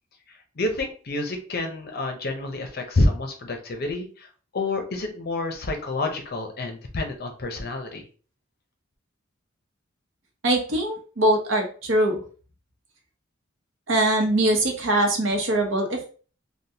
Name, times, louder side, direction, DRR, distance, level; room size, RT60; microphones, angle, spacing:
voice 1, 0.6-4.3 4.5-8.0, left 2 dB, 55° left, 4 dB, 0.7 m, -28 dB
voice 2, 10.4-12.2 13.9-16.1, right 1 dB, 80° right, 3 dB, 0.8 m, -22 dB
3.4 x 2.2 x 2.8 m, 0.39 s
head